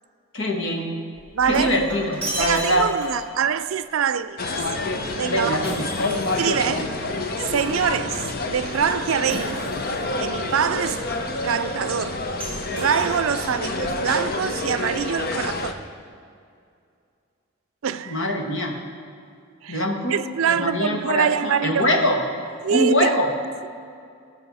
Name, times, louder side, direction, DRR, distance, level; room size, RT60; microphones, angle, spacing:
voice 1, 0.3-0.9 1.4-2.9 5.2-5.9 18.0-18.7 19.7-20.2 20.5-22.1 22.7-23.3, equal, 65° left, 1.5 m, -23 dB
Shatter, 1.1-3.4 5.6-6.9 9.3-10.1 12.4-13.5, right 1 dB, 5° left, 2.8 m, -34 dB
voice 2, 1.3-1.7 2.4-4.6 5.2-5.6 6.4-6.9 7.4-9.7 10.2-12.2 12.8-15.8 17.8-18.2 19.6-19.8 20.1-22.0 22.6-23.1, right 7 dB, 85° right, 0.4 m, -24 dB
sound 1, 4.4-15.7, left 2 dB, 45° left, 0.8 m, -28 dB
19.0 x 6.6 x 4.1 m
head